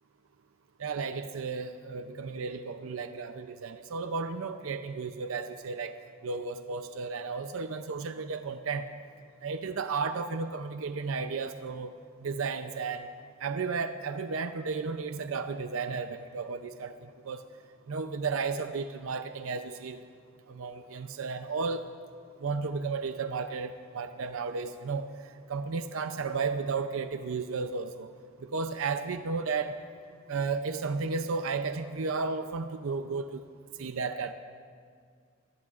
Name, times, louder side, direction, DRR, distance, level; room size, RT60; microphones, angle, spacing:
voice 1, 0.8-5.9 6.2-8.9 9.4-11.9 12.2-13.1 13.4-16.9 17.3-17.4 17.9-20.0 20.5-21.9 22.4-25.1 25.5-28.1 28.5-29.8 30.3-33.4 33.8-34.3, right 4 dB, 75° right, 9 dB, 0.5 m, -33 dB
24.0 x 18.5 x 2.5 m, 2.1 s
head